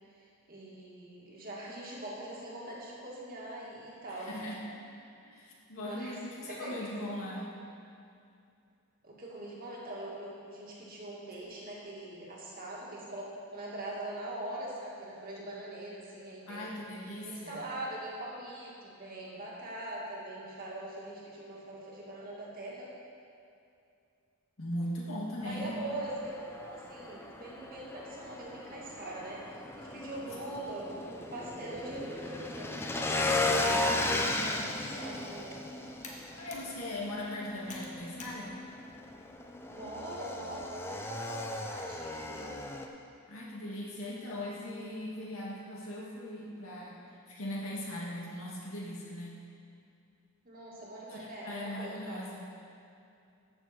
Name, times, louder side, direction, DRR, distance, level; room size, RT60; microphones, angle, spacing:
voice 1, 0.5-4.4 5.8-6.2 6.4-6.9 9.0-16.7 17.3-22.9 25.4-35.6 39.7-42.6 50.5-52.3, right 1 dB, 40° right, -5 dB, 2.0 m, -42 dB
voice 2, 4.1-4.6 5.2-7.4 16.5-17.7 24.6-25.8 36.4-38.6 43.3-47.0 47.3-49.4 51.1-52.4, left 1 dB, 70° left, -4 dB, 2.0 m, -39 dB
Motorcycle / Engine, 25.4-42.9, left 2 dB, 10° left, 0.5 m, -36 dB
Computer keyboard, 34.6-39.7, left 3 dB, 35° left, 1.2 m, -53 dB
13.5 x 6.9 x 4.3 m, 2.5 s
head